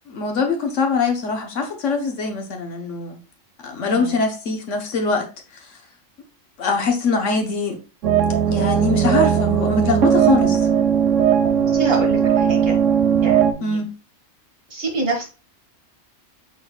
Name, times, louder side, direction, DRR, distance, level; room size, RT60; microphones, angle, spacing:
voice 1, 0.1-3.2 3.6-5.3 5.5-5.8 6.6-7.8 8.5-10.6 13.6-13.9, left 4 dB, 70° left, 1.2 m, -23 dB
voice 2, 3.8-4.1 11.7-12.8 13.2-13.8 14.7-15.3, right 3 dB, 50° right, 1.5 m, -26 dB
sound 1, 8.0-13.5, right 8 dB, 75° right, 0.9 m, -18 dB
5.9 x 3.9 x 2.2 m
omnidirectional pair, 1.4 m